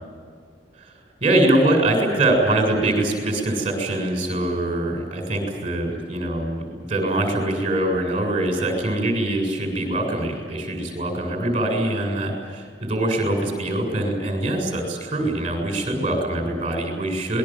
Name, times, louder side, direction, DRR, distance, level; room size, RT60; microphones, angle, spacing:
voice 1, 1.2-17.4, right 1 dB, 30° right, 2 dB, 7.1 m, -23 dB
26.5 x 21.0 x 7.6 m, 2.1 s
head